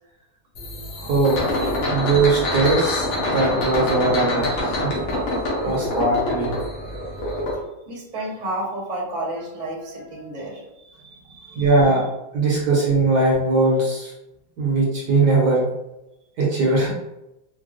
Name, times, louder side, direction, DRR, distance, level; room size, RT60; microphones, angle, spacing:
sound 1, 0.6-7.5, left 1 dB, 90° left, 1.7 m, -25 dB
voice 1, 1.0-1.5 1.9-3.0 3.3-4.9 5.6-6.5 11.5-12.0 12.3-14.1 14.6-15.7 16.4-16.9, right 3 dB, 65° right, -4 dB, 1.2 m, -20 dB
voice 2, 5.4-6.0 7.9-12.0, right 1 dB, 30° right, -5 dB, 0.8 m, -33 dB
4.5 x 2.2 x 2.4 m, 0.92 s
omnidirectional pair, 2.1 m